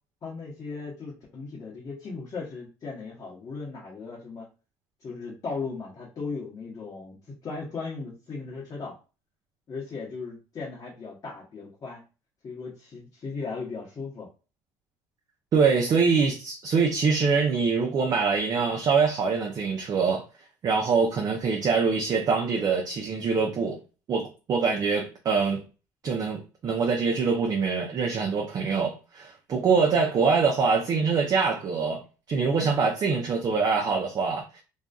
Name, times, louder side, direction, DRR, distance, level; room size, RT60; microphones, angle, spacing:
voice 1, 0.2-4.5 5.0-7.2 7.4-9.0 9.7-12.0 12.4-14.3, left 4 dB, 40° left, 0.9 m, -37 dB
voice 2, 15.5-20.2 20.6-23.8 24.1-25.6 26.0-32.0 32.3-34.6, right 5 dB, 45° right, 0.6 m, -24 dB
2.5 x 2.3 x 2.3 m
supercardioid pair, 80°, 9 cm